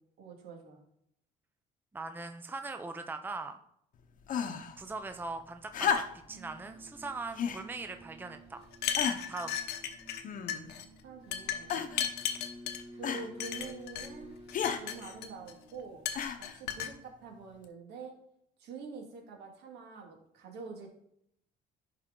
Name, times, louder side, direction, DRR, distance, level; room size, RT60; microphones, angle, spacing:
voice 1, 0.2-0.8 11.0-12.2 12.9-14.4 14.8-16.0 16.4-18.1 18.6-20.9, right 4 dB, 75° right, 1 dB, 2.4 m, -46 dB
voice 2, 1.9-3.6 4.8-6.0 6.3-8.7 9.3-9.6, right 3 dB, 10° right, 7 dB, 0.6 m, -40 dB
sound 1, 4.3-4.8 5.7-6.4 7.3-7.7 8.4-8.5 8.9-9.4 10.2-10.8 11.7-12.1 13.0-13.3 14.5-14.8 16.1-16.6 17.6-17.7, left 7 dB, 50° left, 0.9 m, -33 dB
sound 2, 6.2-16.5, right 1 dB, 35° right, 3.8 m, -53 dB
sound 3, 8.7-10.2 10.5-10.8 11.3-12.8 13.4-14.1 14.5-15.5 16.0-16.9, left 9 dB, 80° left, 1.0 m, -35 dB
11.0 x 4.9 x 3.9 m, 0.73 s
cardioid pair, 110°, 17 cm